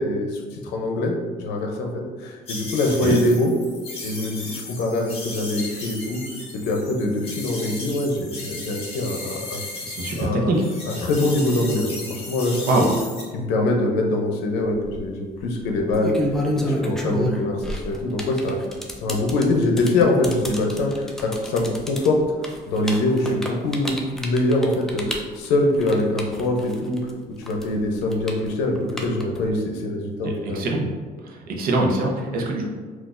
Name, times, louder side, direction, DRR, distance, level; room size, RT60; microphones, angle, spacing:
voice 1, 0.0-3.5 4.0-6.2 6.5-9.6 10.1-10.6 10.9-12.9 13.3-16.2 16.8-18.6 19.0-22.2 22.7-27.0 27.4-30.7, left 2 dB, 90° left, 2 dB, 0.6 m, -23 dB
sound 1, 2.5-10.3 10.5-13.2, left 2 dB, 35° left, 1.2 m, -35 dB
voice 2, 9.9-10.6 12.7-12.9 30.2-30.9 31.2-32.7, right 2 dB, 60° right, -1 dB, 0.7 m, -23 dB
sound 2, 14.6-15.0 15.7-27.1 27.4-29.5, equal, 5° left, 0.4 m, -29 dB
3.8 x 2.4 x 2.4 m, 1.5 s
cardioid pair, 110°, 17 cm